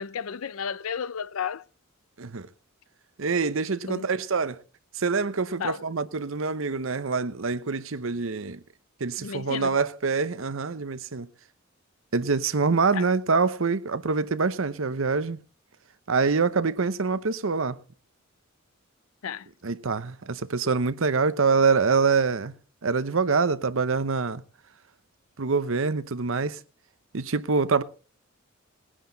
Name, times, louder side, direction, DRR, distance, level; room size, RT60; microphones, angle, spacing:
voice 1, 0.0-1.6 3.9-4.1 5.6-5.8 9.2-9.8 12.9-13.1 19.2-19.5, left 7 dB, 85° left, 0.5 m, -33 dB
voice 2, 3.2-4.6 4.9-8.6 9.0-11.3 12.1-15.4 16.1-17.8 19.6-22.5 22.8-24.4 25.4-26.6 27.1-27.8, right 4 dB, 65° right, 0.8 m, -25 dB
19.0 x 10.0 x 4.0 m
head